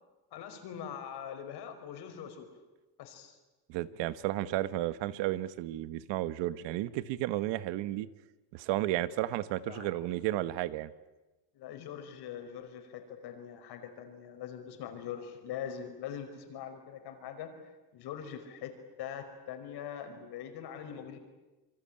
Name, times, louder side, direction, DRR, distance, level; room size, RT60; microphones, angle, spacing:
voice 1, 0.3-2.5 3.0-3.4 9.6-10.0 11.5-17.5 17.9-21.2, left 8 dB, 65° left, 7 dB, 5.1 m, -42 dB
voice 2, 3.7-8.1 8.5-10.9, right 15 dB, 85° right, 15 dB, 1.4 m, -33 dB
27.0 x 24.0 x 8.8 m, 1.1 s
cardioid pair, 160°, 42 cm